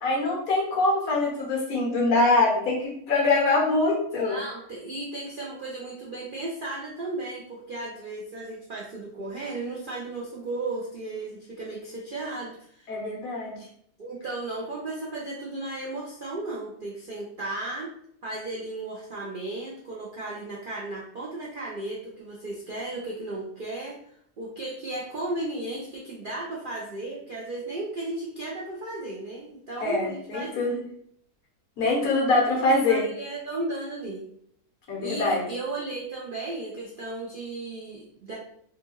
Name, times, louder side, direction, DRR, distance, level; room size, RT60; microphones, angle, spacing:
voice 1, 0.0-4.4 12.9-13.6 29.8-30.8 31.8-33.0 34.9-35.4, left 2 dB, 65° left, -3 dB, 1.6 m, -24 dB
voice 2, 4.1-12.9 14.0-17.9 18.2-23.9 24.4-30.5 32.5-34.3 35.0-38.4, right 2 dB, 60° right, -5 dB, 0.5 m, -35 dB
3.9 x 2.3 x 3.0 m, 0.67 s
omnidirectional pair, 1.6 m